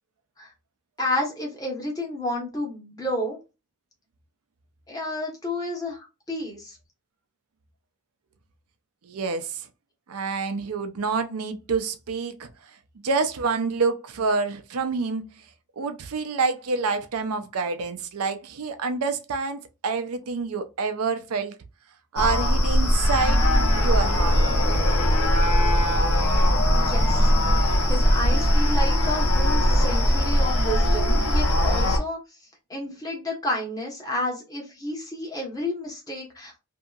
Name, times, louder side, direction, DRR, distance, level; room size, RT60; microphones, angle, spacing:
voice 1, 1.0-3.4 4.9-6.8 26.8-27.3 27.7-32.2 32.7-36.6, left 1 dB, 15° left, 1.0 m, -31 dB
voice 2, 9.0-9.7 10.1-12.5 13.0-15.4 15.8-21.6 22.1-23.4 23.8-24.4, right 4 dB, 85° right, 0.5 m, -27 dB
sound 1, 22.2-32.0, equal, 75° left, 0.8 m, -20 dB
2.8 x 2.6 x 2.3 m
head